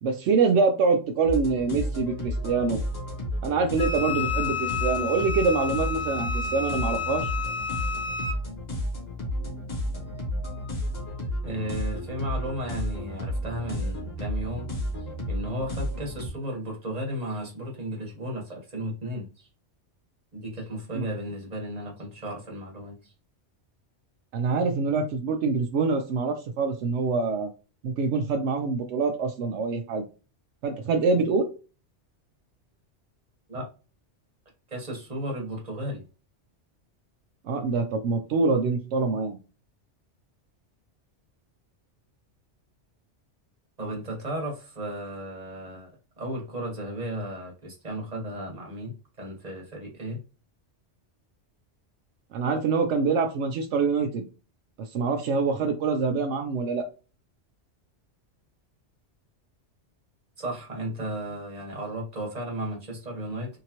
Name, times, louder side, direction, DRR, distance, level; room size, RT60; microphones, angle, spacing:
voice 1, 0.0-2.8 3.4-7.3 20.9-21.1 24.3-27.5 27.8-30.0 30.6-31.5 37.4-39.4 52.3-54.3 54.9-56.8, right 4 dB, 80° right, 5 dB, 0.9 m, -25 dB
sound 1, 1.2-16.3, equal, 60° left, 1.6 m, -32 dB
Wind instrument woodwind instrument, 3.8-8.4, left 6 dB, 80° left, 1.1 m, -31 dB
voice 2, 11.4-14.7 15.3-19.5 20.3-23.1 33.5-33.7 34.7-36.0 43.8-45.9 46.2-50.2 60.4-63.6, right 1 dB, 35° right, 0 dB, 1.3 m, -34 dB
3.7 x 2.8 x 2.9 m, 0.33 s
omnidirectional pair, 1.2 m